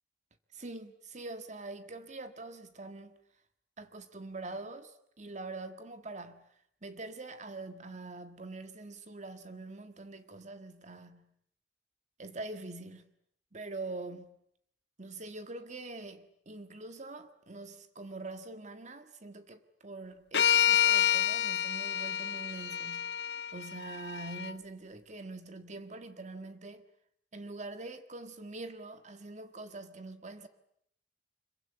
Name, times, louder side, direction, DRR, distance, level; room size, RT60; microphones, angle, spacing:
voice 1, 0.5-3.2 3.8-6.4 6.8-11.3 12.2-13.1 13.5-14.3 15.0-23.2 23.5-26.8 27.3-30.5, right 2 dB, 45° right, 1.7 m, -44 dB
sound 1, 20.3-24.5, left 9 dB, 70° left, 1.4 m, -28 dB
25.5 x 23.5 x 9.7 m
head